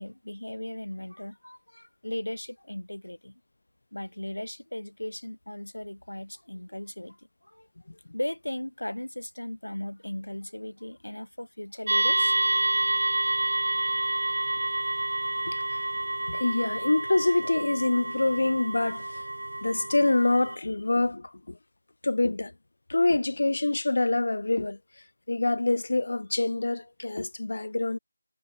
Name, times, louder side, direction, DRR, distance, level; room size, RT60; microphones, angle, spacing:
voice 1, 0.0-3.4 3.9-7.7 8.1-12.3, left 1 dB, 85° left, 5.0 m, -37 dB
sound 1, 11.9-20.6, right 2 dB, 60° right, 1.7 m, -28 dB
voice 2, 15.5-15.8 16.3-19.2 19.6-21.6 22.0-22.5 22.9-24.8 25.3-28.0, left 2 dB, 55° left, 1.8 m, -26 dB
figure-of-eight pair, 170°, 0 cm